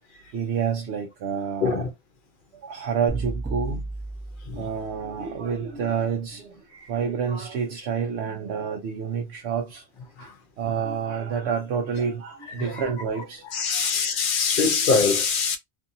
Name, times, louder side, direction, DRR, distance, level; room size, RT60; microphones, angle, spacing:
voice 1, 0.3-1.9 2.5-3.9 4.5-9.9 10.2-13.5 13.8-14.1 14.5-14.7, right 6 dB, 80° right, 0.8 m, -29 dB
sound 1, 3.1-5.3, right 3 dB, 15° right, 0.5 m, -33 dB
voice 2, 13.5-15.6, left 5 dB, 55° left, 0.7 m, -22 dB
2.6 x 2.6 x 2.6 m
omnidirectional pair, 1.1 m